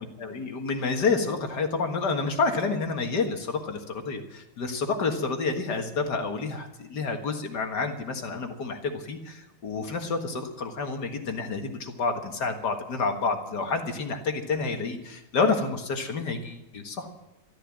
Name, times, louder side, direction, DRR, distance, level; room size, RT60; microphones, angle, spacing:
voice 1, 0.0-17.1, left 4 dB, 55° left, 4 dB, 2.2 m, -29 dB
13.5 x 13.5 x 7.5 m, 0.89 s
omnidirectional pair, 2.3 m